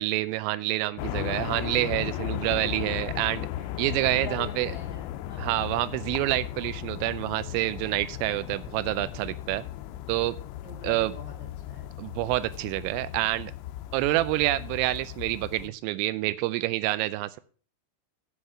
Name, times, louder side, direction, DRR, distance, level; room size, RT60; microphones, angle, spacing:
voice 1, 0.0-3.5 3.8-4.7 5.4-9.6 10.1-10.4 10.8-11.1 12.0-13.5 13.9-17.4, right 17 dB, 85° right, 14 dB, 3.2 m, -27 dB
sound 1, 1.0-15.7, left 14 dB, 90° left, 2.6 m, -36 dB
voice 2, 4.0-5.7 10.6-12.0 15.6-15.7, left 4 dB, 45° left, -3 dB, 1.5 m, -43 dB
13.5 x 4.9 x 5.5 m, 0.42 s
omnidirectional pair, 5.8 m